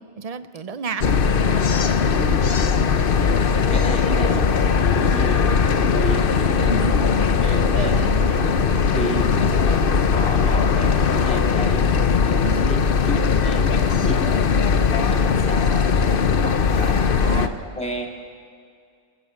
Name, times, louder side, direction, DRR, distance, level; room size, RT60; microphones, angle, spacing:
voice 1, 0.2-1.1 6.6-8.4 12.4-12.6 17.2-17.6, right 4 dB, 35° right, 12 dB, 0.7 m, -31 dB
sound 1, 1.0-17.5, left 6 dB, 50° left, 0.9 m, -19 dB
voice 2, 2.1-2.5 3.0-6.8 7.5-8.0 8.4-14.5 14.9-15.9 16.4-18.1, equal, 5° left, 1 dB, 2.4 m, -32 dB
24.0 x 15.0 x 7.3 m, 2.2 s
omnidirectional pair, 1.3 m